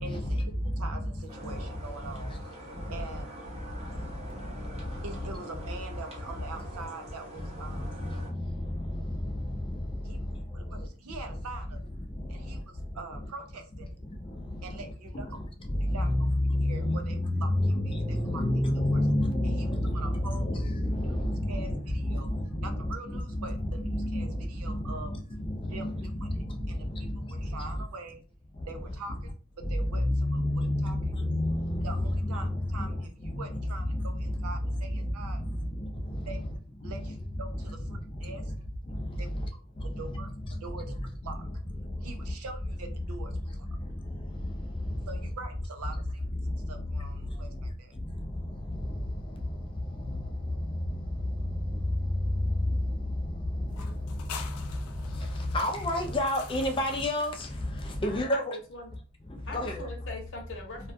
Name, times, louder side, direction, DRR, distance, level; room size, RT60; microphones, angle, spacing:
voice 1, 0.0-3.4 5.0-8.0 10.0-10.2 10.5-11.8 12.3-13.9 14.6-15.4 15.8-16.1 16.6-18.4 18.8-19.0 19.4-20.6 21.0-21.2 21.5-22.3 22.6-23.8 24.1-25.1 25.7-26.3 26.7-28.2 28.7-31.0 31.8-35.4 36.3-36.4 36.8-38.5 39.2-39.6 40.0-40.3 40.6-41.0 41.2-41.5 42.0-43.7 45.1-46.2 46.7-47.9, right 3 dB, 85° right, 6 dB, 0.5 m, -44 dB
sound 1, 1.3-8.3, right 1 dB, 30° right, 0.6 m, -45 dB
voice 2, 16.0-21.8 22.1-22.4 23.9-24.3 25.4-26.1 30.1-32.1 33.3-33.4 55.5-57.3 58.0-58.6 59.5-59.8, left 1 dB, 25° left, 3 dB, 0.4 m, -28 dB
sound 2, 53.7-58.3, left 6 dB, 85° left, 0.4 m, -46 dB
voice 3, 58.0-58.9 59.5-60.9, left 2 dB, 60° left, 1 dB, 0.8 m, -42 dB
2.5 x 2.3 x 2.5 m, 0.37 s
head